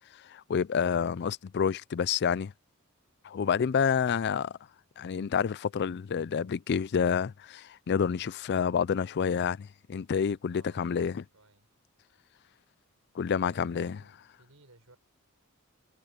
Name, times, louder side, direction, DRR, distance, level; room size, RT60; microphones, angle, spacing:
voice 1, 0.2-2.5 3.2-4.5 5.0-11.2 13.2-14.0, left 7 dB, 50° left, 0.4 m, -28 dB
voice 2, 10.4-11.7 13.5-15.0, right 2 dB, 70° right, 4.8 m, -59 dB
head